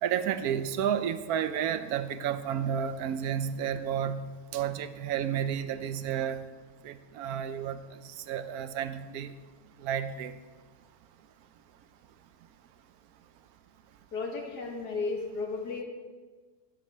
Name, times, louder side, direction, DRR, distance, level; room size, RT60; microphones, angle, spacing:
voice 1, 0.0-4.2 4.5-6.4 6.8-7.8 8.3-9.3 9.8-10.3, right 9 dB, 75° right, 12 dB, 1.1 m, -31 dB
voice 2, 14.1-15.8, left 4 dB, 85° left, 2 dB, 1.9 m, -34 dB
12.5 x 10.0 x 3.3 m, 1.4 s
omnidirectional pair, 1.7 m